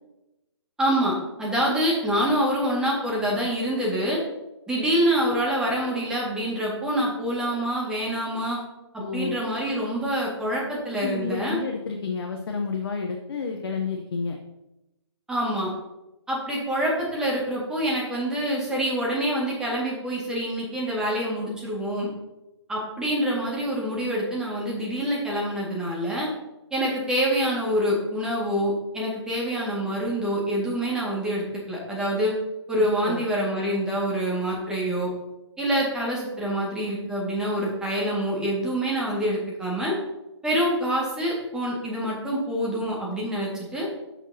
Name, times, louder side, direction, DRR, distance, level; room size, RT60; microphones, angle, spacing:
voice 1, 0.8-1.1 1.4-4.2 4.7-8.6 8.9-11.6 15.3-15.7 16.3-22.1 22.7-26.3 26.7-32.3 32.7-35.1 35.6-39.9 40.4-43.9, equal, 5° right, -5 dB, 1.9 m, -26 dB
voice 2, 9.0-9.4 11.0-14.4 32.8-33.2, left 4 dB, 55° left, 2 dB, 1.0 m, -30 dB
12.0 x 6.0 x 2.8 m, 0.97 s
figure-of-eight pair, 140°, 15 cm